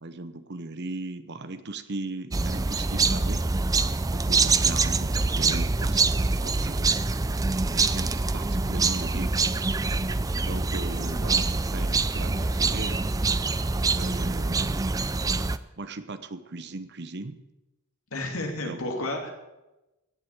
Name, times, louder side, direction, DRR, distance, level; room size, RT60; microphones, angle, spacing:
voice 1, 0.0-3.5 4.1-7.0 7.7-9.5 10.4-13.1 13.9-14.9 15.8-17.4 18.6-18.8, right 2 dB, 50° right, 11 dB, 0.9 m, -38 dB
sound 1, 2.3-15.6, right 3 dB, 15° right, 0.4 m, -25 dB
sound 2, 10.8-11.5 12.1-14.3 14.7-15.2 15.5-15.6, equal, 15° left, 1.6 m, -51 dB
voice 2, 18.1-19.3, left 1 dB, 75° left, 2 dB, 2.9 m, -31 dB
17.0 x 7.6 x 8.0 m, 1.0 s
head